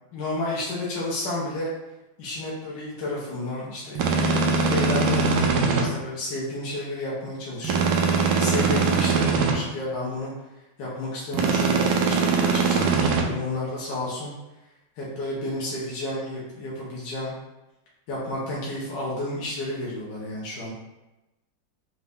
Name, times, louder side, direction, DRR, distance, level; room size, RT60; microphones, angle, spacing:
voice 1, 0.1-1.7 2.2-8.0 8.4-10.3 10.8-14.3 15.0-17.3 18.1-20.7, left 1 dB, 70° left, -6 dB, 1.5 m, -31 dB
sound 1, 4.0-5.8 7.6-9.5 11.3-13.2, right 4 dB, 75° right, 1.3 m, -21 dB
4.5 x 2.6 x 3.4 m, 0.99 s
omnidirectional pair, 2.0 m